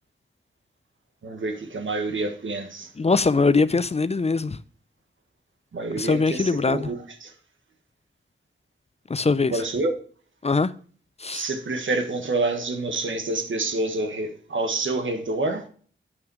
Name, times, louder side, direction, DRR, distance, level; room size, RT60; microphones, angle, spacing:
voice 1, 1.2-2.9 5.7-7.3 9.5-9.9 11.3-15.7, right 2 dB, 80° right, 1.5 m, -27 dB
voice 2, 3.0-4.6 6.0-6.9 9.1-9.5 10.4-10.7 11.2-11.4, left 4 dB, 35° left, 0.5 m, -22 dB
8.3 x 5.7 x 4.8 m
wide cardioid pair, 65°, 20 cm